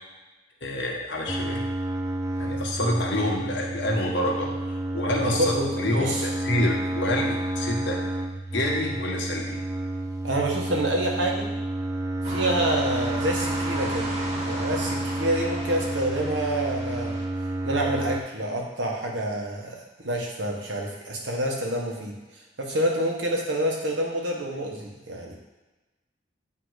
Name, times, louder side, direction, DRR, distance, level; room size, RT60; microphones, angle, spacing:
voice 1, 0.6-1.6 2.4-4.5 4.9-8.0 8.5-9.6, left 1 dB, 80° left, -1 dB, 1.2 m, -27 dB
sound 1, 1.3-18.2, right 1 dB, 15° right, 0.3 m, -30 dB
voice 2, 5.2-6.3 10.2-11.5 12.3-14.1 14.4-17.2 17.6-22.2 22.6-25.4, right 1 dB, 80° right, -1 dB, 1.2 m, -27 dB
sound 2, 12.2-17.2, right 1 dB, 35° right, 1.3 m, -36 dB
8.6 x 2.9 x 4.8 m, 1.1 s
head